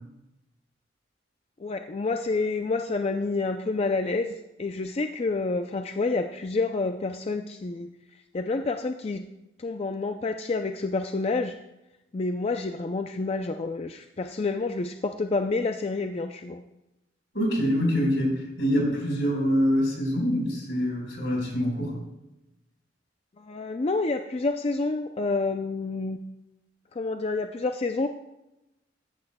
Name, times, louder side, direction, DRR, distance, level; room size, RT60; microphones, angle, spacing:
voice 1, 1.6-7.9 8.3-9.2 9.6-11.5 12.1-16.6 23.4-26.2 26.9-28.1, left 3 dB, 35° left, 6 dB, 0.4 m, -28 dB
voice 2, 17.3-22.0, equal, 75° left, -1 dB, 4.2 m, -25 dB
14.5 x 10.5 x 2.2 m, 0.93 s
head